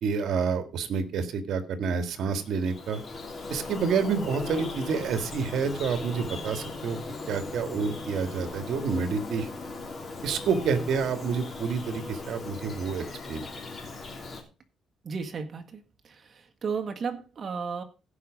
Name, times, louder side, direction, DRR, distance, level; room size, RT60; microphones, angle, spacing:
voice 1, 0.0-3.0 3.5-7.0 7.3-9.5 10.2-13.5, right 5 dB, 65° right, 9 dB, 1.8 m, -28 dB
Bird vocalization bird call bird song, 2.4-14.4, left 3 dB, 35° left, 2.9 m, -38 dB
voice 2, 15.0-17.8, right 5 dB, 40° right, 5 dB, 1.6 m, -34 dB
16.0 x 5.5 x 5.0 m, 0.32 s
cardioid pair, 130°, 0 cm